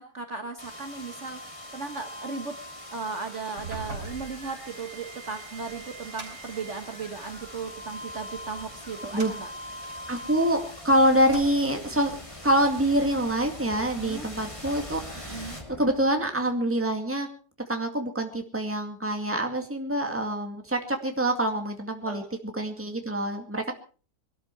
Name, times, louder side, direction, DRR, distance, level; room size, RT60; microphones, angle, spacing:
voice 1, 0.0-2.6 2.9-9.5 14.0-14.3 15.2-15.6 22.0-22.3, right 4 dB, 45° right, 6 dB, 1.6 m, -36 dB
sound 1, 0.6-16.4, equal, 20° left, 2.8 m, -42 dB
sound 2, 3.4-7.5 8.1-10.8 11.1-11.9, right 3 dB, 75° right, 4.8 m, -44 dB
voice 2, 10.1-12.1 12.4-17.3 17.7-23.7, right 1 dB, 10° right, 4 dB, 2.1 m, -26 dB
22.5 x 13.0 x 4.6 m, 0.40 s
omnidirectional pair, 1.7 m